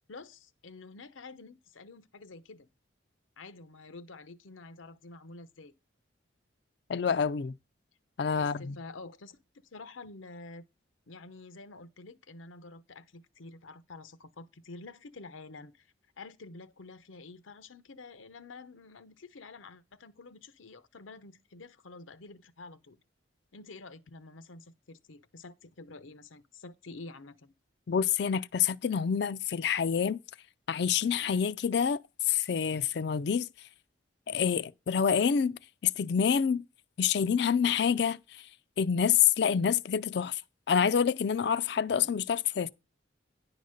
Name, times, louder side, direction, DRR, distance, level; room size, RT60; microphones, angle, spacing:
voice 1, 0.1-2.7 3.4-5.7 8.4-10.6 11.1-15.9 16.2-23.0 23.5-27.5, left 3 dB, 85° left, 0.8 m, -48 dB
voice 2, 6.9-7.5 8.2-8.8 27.9-30.2 30.7-32.0 32.3-33.5 34.3-36.6 37.0-38.4 38.8-40.4 40.7-42.7, left 7 dB, 55° left, 0.4 m, -27 dB
10.0 x 4.0 x 6.4 m
head